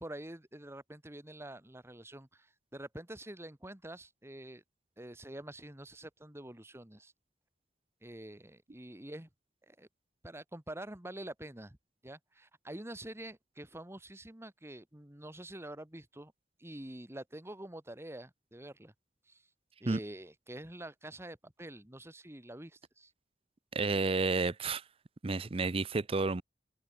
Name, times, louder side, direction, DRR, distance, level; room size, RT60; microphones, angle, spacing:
voice 1, 0.0-4.6 5.0-7.1 8.0-9.3 9.7-9.9 10.2-11.8 12.0-16.3 16.6-18.9 19.3-19.4 19.8-23.1, right 1 dB, 15° right, 1.8 m, -46 dB
voice 2, 23.7-24.8 25.2-26.4, right 3 dB, 35° right, 0.6 m, -31 dB
head